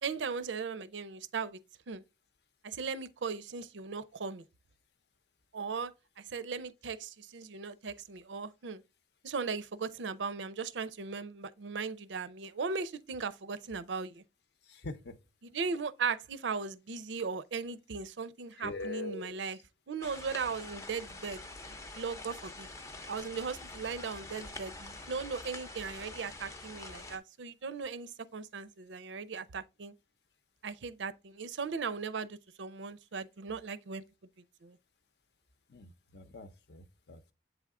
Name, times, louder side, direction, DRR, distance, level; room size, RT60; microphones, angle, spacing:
voice 1, 0.0-1.6 1.9-2.0 2.6-4.4 5.5-8.8 9.2-14.2 15.4-19.6 19.9-21.4 21.9-22.7 23.1-29.9 30.6-34.0 34.6-34.8, right 5 dB, 85° right, 0.5 m, -38 dB
voice 2, 14.7-15.2 18.6-19.4 35.7-37.3, left 3 dB, 65° left, 0.7 m, -43 dB
sound 1, 20.0-27.2, left 2 dB, 15° left, 0.5 m, -46 dB
7.9 x 3.5 x 3.6 m
head